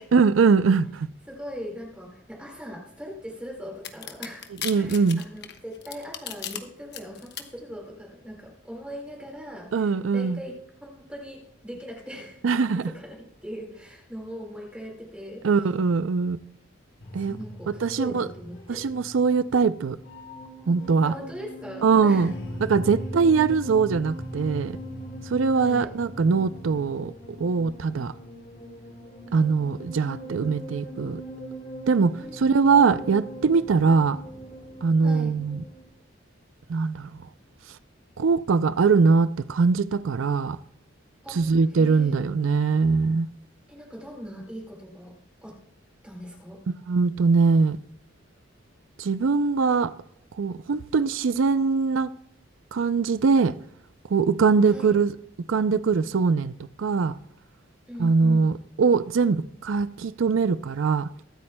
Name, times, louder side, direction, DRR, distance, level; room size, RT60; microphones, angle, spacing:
voice 1, 0.1-1.1 4.6-5.2 9.7-10.4 12.4-12.9 15.4-16.4 17.1-17.4 17.8-18.3 18.7-20.0 20.7-21.1 21.8-22.3 22.6-24.8 25.3-27.1 27.4-28.1 29.3-31.2 31.9-34.2 34.8-35.6 36.7-37.1 38.2-40.6 41.3-43.3 46.9-47.8 49.0-49.9 50.4-52.1 52.7-53.5 54.1-55.1 55.5-56.5 56.8-57.1 58.0-61.1, right 5 dB, 85° right, 0.5 m, -22 dB
voice 2, 1.3-4.5 4.8-12.4 12.7-15.7 17.2-18.9 21.0-22.3 25.5-25.9 32.1-32.8 35.0-35.3 41.2-42.3 43.7-45.1 45.4-45.6 46.0-46.6 54.6-54.9 57.9-58.5, equal, 5° right, 2.0 m, -40 dB
sound 1, 3.8-6.6 6.9-7.4, left 10 dB, 55° left, 1.1 m, -35 dB
sound 2, 17.0-35.8, equal, 80° left, 3.7 m, -40 dB
23.0 x 8.5 x 2.2 m
head